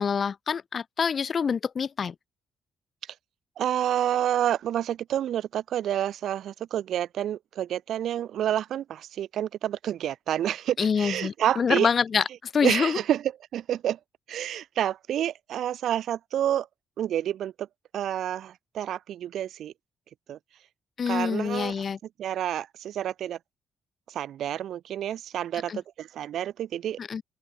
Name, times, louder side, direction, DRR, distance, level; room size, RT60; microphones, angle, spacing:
voice 1, 0.0-2.1 10.8-12.2 12.5-13.0 21.0-22.0 25.7-25.8 27.0-27.2, left 6 dB, 45° left, 1.0 m, -26 dB
voice 2, 3.6-11.9 12.6-13.2 13.5-14.0 14.3-16.7 17.0-17.7 17.9-19.7 20.3-20.4 21.1-21.7 22.2-23.4 24.1-27.0, right 11 dB, 70° right, 1.5 m, -29 dB
open air
cardioid pair, 90°, 0 cm